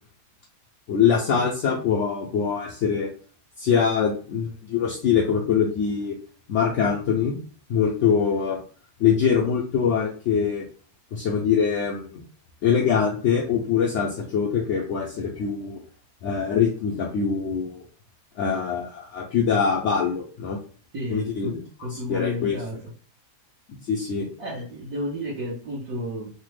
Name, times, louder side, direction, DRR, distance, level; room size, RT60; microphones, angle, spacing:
voice 1, 0.9-3.1 3.6-6.2 6.5-7.3 7.7-8.6 9.0-10.7 11.1-12.1 12.6-15.8 16.2-17.8 18.4-20.6 21.1-21.6 21.9-22.6 23.8-24.3, left 7 dB, 75° left, -2 dB, 0.6 m, -23 dB
voice 2, 20.9-21.5 21.8-22.8 24.4-26.3, left 1 dB, 70° right, -7 dB, 1.4 m, -31 dB
3.3 x 2.1 x 3.1 m, 0.43 s
omnidirectional pair, 1.7 m